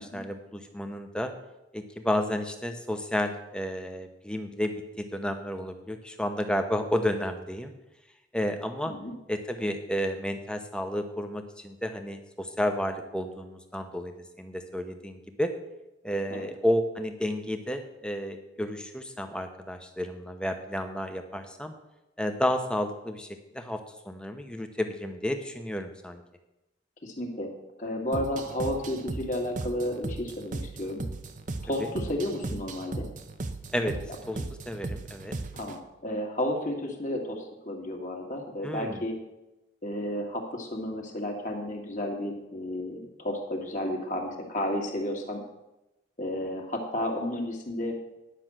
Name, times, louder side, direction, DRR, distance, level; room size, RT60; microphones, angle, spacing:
voice 1, 0.0-1.3 1.7-7.7 8.3-8.9 9.3-15.5 16.0-21.7 22.2-23.3 23.5-23.8 24.1-26.2 31.8-31.9 33.7-33.9 34.3-34.4 34.7-35.4 38.6-39.0, left 1 dB, 5° left, 6 dB, 0.8 m, -31 dB
voice 2, 27.0-27.5 27.8-31.0 31.6-33.1 34.3-34.5 35.5-39.2 39.8-45.4 46.2-48.0, left 1 dB, 40° left, 2 dB, 1.8 m, -32 dB
sound 1, 28.1-35.8, right 2 dB, 40° right, 0.7 m, -37 dB
10.0 x 6.0 x 7.5 m, 0.97 s
head